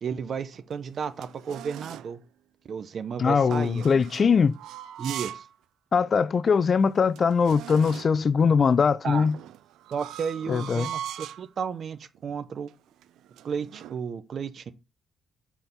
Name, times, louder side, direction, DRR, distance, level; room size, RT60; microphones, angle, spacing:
voice 1, 0.0-2.2 2.7-4.1 5.0-5.5 9.0-9.3 9.9-12.7 13.4-14.7, right 6 dB, 55° right, 0.8 m, -33 dB
sound 1, 0.5-2.2 3.4-5.5 5.9-6.0 6.6-6.7 6.9-8.3 9.2-11.5 12.1-12.4 12.7-14.0, right 11 dB, 80° right, 0.3 m, -41 dB
voice 2, 3.2-4.6 5.9-9.3 10.5-10.9, left 5 dB, 45° left, 0.4 m, -21 dB
5.7 x 4.3 x 5.4 m
cardioid pair, 90°, 0 cm